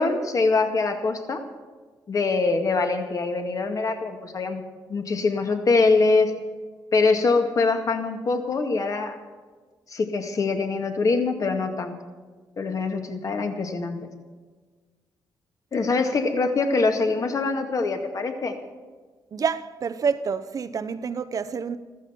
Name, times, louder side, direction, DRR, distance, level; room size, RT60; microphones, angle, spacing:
voice 1, 0.0-1.4 2.1-4.6 4.9-6.3 6.9-9.2 9.9-11.9 12.6-14.1 15.7-18.5, left 3 dB, 45° left, 2.0 m, -23 dB
voice 2, 19.3-21.8, right 6 dB, 50° right, 0.8 m, -27 dB
15.0 x 14.0 x 5.8 m
cardioid pair, 100°, 8 cm